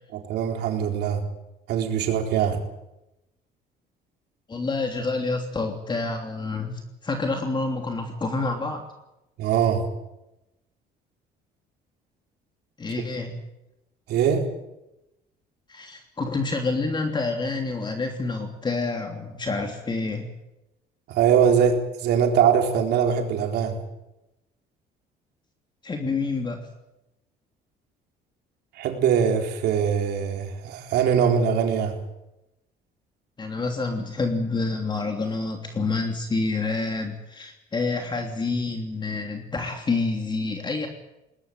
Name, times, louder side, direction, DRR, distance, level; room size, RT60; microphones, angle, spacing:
voice 1, 0.1-1.2 1.7-2.6 9.4-9.8 14.1-14.4 21.1-23.8 28.8-32.0, right 7 dB, 75° right, 3 dB, 4.1 m, -22 dB
voice 2, 4.5-8.9 12.8-13.4 15.7-20.3 25.8-26.7 33.4-40.9, left 3 dB, 25° left, 4 dB, 3.0 m, -28 dB
21.0 x 19.5 x 9.1 m, 0.94 s
cardioid pair, 110°, 17 cm